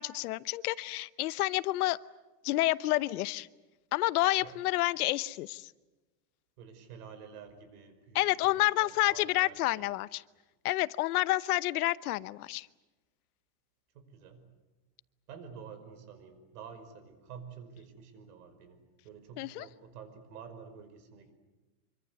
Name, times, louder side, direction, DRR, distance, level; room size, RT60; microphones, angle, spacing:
voice 1, 0.0-2.0 2.4-3.5 3.9-5.7 8.1-10.2 10.6-12.7 19.4-19.7, left 18 dB, 75° left, 17 dB, 0.9 m, -29 dB
voice 2, 6.6-9.8 13.9-14.5 15.3-21.3, right 6 dB, 85° right, 10 dB, 5.4 m, -49 dB
26.0 x 24.5 x 8.1 m, 1.1 s
supercardioid pair, 180°, 45 cm